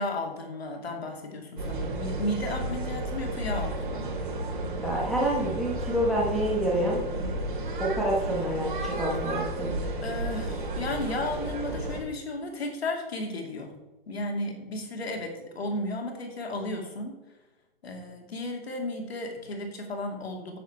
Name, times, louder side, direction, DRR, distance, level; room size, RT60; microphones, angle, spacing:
voice 1, 0.0-4.1 10.0-13.7 14.1-17.2 17.8-20.6, left 1 dB, 85° left, 2 dB, 2.7 m, -34 dB
sound 1, 1.6-12.0, right 1 dB, 55° right, 3.0 m, -32 dB
voice 2, 4.8-7.3 7.8-9.7, right 1 dB, ahead, -5 dB, 1.2 m, -28 dB
10.0 x 7.6 x 4.3 m, 1.1 s
hypercardioid pair, 175°, 30 cm